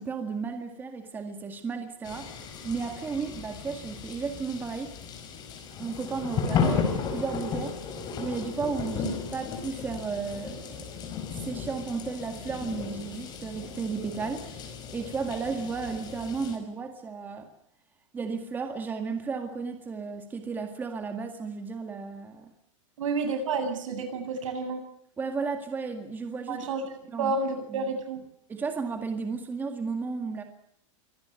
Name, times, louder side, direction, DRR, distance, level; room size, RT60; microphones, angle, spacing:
voice 1, 0.0-4.9 5.8-7.8 8.2-10.8 11.4-17.5 18.1-22.5 25.2-26.6 27.1-27.4 27.7-27.9 28.5-30.4, right 5 dB, 10° right, 6 dB, 2.0 m, -34 dB
sound 1, 2.0-16.6, left 6 dB, 25° left, 4.7 m, -34 dB
voice 2, 23.0-24.8 26.5-28.2, right 3 dB, 85° right, 7 dB, 7.8 m, -30 dB
24.5 x 17.5 x 9.0 m, 0.69 s
supercardioid pair, 165°, 16 cm